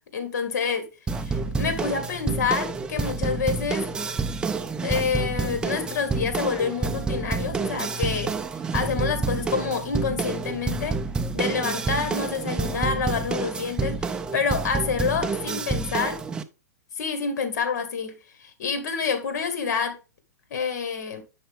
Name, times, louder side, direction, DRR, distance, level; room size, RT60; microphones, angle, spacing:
voice 1, 0.1-0.9 1.2-3.9 4.8-8.4 8.7-11.0 11.3-16.2 17.0-18.2 18.4-20.0 20.5-21.2, left 5 dB, 60° left, 1.9 m, -27 dB
sound 1, 1.1-16.4, right 4 dB, 10° right, 0.5 m, -28 dB
7.8 x 5.7 x 3.6 m
hypercardioid pair, 145°, 10 cm